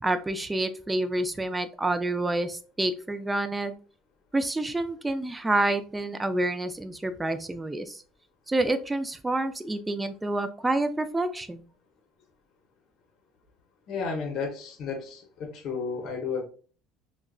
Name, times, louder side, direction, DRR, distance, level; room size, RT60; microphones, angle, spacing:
voice 1, 0.0-3.7 4.3-8.0 8.5-11.6, right 2 dB, 15° right, 0.3 m, -28 dB
voice 2, 13.9-16.4, left 5 dB, 60° left, 0.7 m, -32 dB
3.5 x 2.1 x 2.3 m
supercardioid pair, 100°, 0 cm